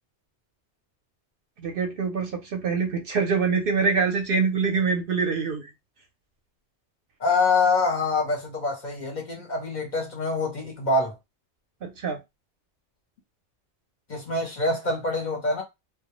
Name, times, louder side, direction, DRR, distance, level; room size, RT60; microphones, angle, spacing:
voice 1, 1.6-5.7 11.8-12.2, right 5 dB, 60° right, 0.7 m, -25 dB
voice 2, 7.2-11.1 14.1-15.6, left 3 dB, 50° left, 0.6 m, -25 dB
2.1 x 2.0 x 2.9 m
omnidirectional pair, 1.2 m